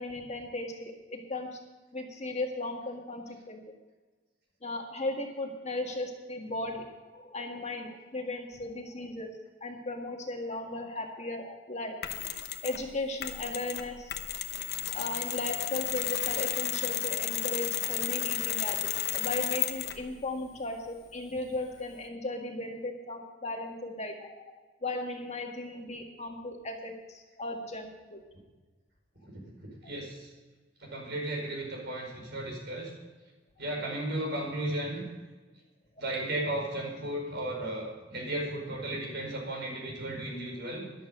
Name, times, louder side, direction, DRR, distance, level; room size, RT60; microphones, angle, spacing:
voice 1, 0.0-1.6 1.9-3.7 4.6-6.9 7.1-9.3 9.6-11.9 12.6-14.2 14.9-24.5 24.8-28.2 29.8-29.9, left 2 dB, 35° left, 2 dB, 1.8 m, -36 dB
Mechanisms, 12.0-12.8 13.2-20.1, left 12 dB, 55° left, 1.0 m, -33 dB
voice 2, 29.8-30.3 30.8-32.9 33.6-35.0 36.0-40.8, right 1 dB, 60° right, 0 dB, 5.0 m, -35 dB
13.5 x 11.5 x 5.3 m, 1.3 s
head